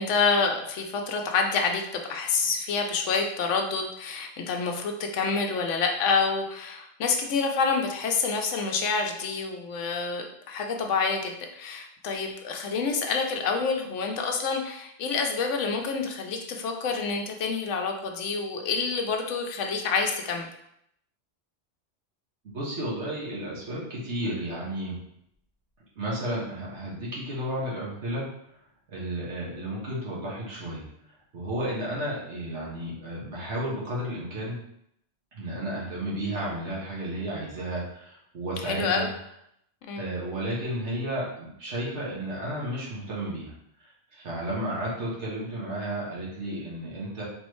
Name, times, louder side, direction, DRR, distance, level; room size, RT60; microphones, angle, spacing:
voice 1, 0.0-20.5 38.6-39.1 39.9-40.0, left 4 dB, 90° left, 3 dB, 1.0 m, -27 dB
voice 2, 22.4-25.0 25.9-28.2 28.9-30.8 31.3-34.6 35.3-39.1 40.0-43.5 44.1-47.2, right 1 dB, 75° right, -5 dB, 1.6 m, -32 dB
4.0 x 3.1 x 3.1 m, 0.75 s
omnidirectional pair, 1.2 m